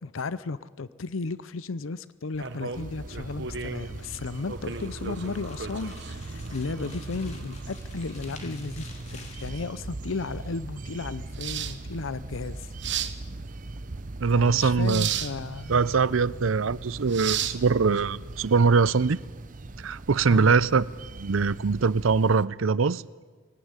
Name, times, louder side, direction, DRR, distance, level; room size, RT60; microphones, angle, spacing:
voice 1, 0.0-12.7 14.3-15.7 20.3-20.6, left 4 dB, 80° left, 0.7 m, -34 dB
sound 1, 2.3-18.5, right 8 dB, 60° right, 1.2 m, -37 dB
sound 2, 2.7-22.5, right 2 dB, 40° right, 0.7 m, -40 dB
sound 3, 3.7-9.6, left 4 dB, 35° left, 3.4 m, -51 dB
voice 2, 14.2-15.1 15.7-19.2 19.8-20.9 21.2-23.0, right 5 dB, 85° right, 0.6 m, -22 dB
20.5 x 17.5 x 9.8 m
head